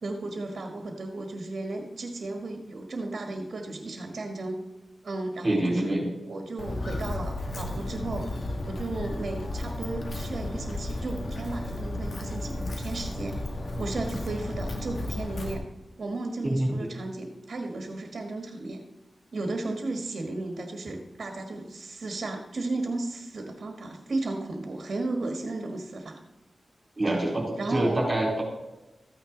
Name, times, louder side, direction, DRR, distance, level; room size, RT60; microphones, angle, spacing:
voice 1, 0.0-4.6 5.0-6.0 6.3-8.4 8.7-13.4 13.8-15.6 16.0-18.8 19.3-26.2 27.6-28.0, right 2 dB, 65° right, 3 dB, 1.5 m, -34 dB
voice 2, 5.4-6.0 16.4-16.9 27.0-28.4, right 1 dB, 35° right, -2 dB, 4.0 m, -26 dB
Walk footsteps, 6.6-15.5, left 1 dB, 60° left, 2.0 m, -33 dB
14.5 x 9.1 x 3.9 m, 1.0 s
wide cardioid pair, 70°, 0 cm